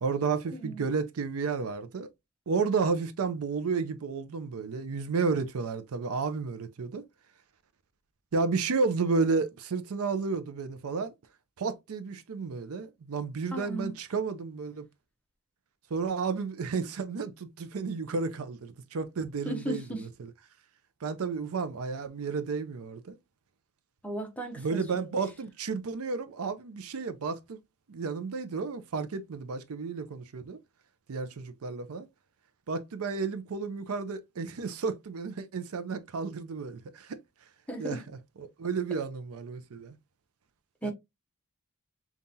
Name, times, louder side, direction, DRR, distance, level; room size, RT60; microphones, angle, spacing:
voice 1, 0.0-2.1 2.5-7.1 8.3-11.1 11.6-14.9 15.9-20.3 21.0-23.2 24.6-27.6 27.9-30.6 31.1-32.1 32.7-37.2 37.8-38.0 38.4-39.9 40.8-40.9, right 4 dB, 70° right, 0.5 m, -32 dB
voice 2, 13.5-13.9 19.4-20.0 24.0-24.8 37.7-38.0 40.8-40.9, right 1 dB, 5° left, 0.7 m, -35 dB
5.4 x 2.4 x 2.7 m
head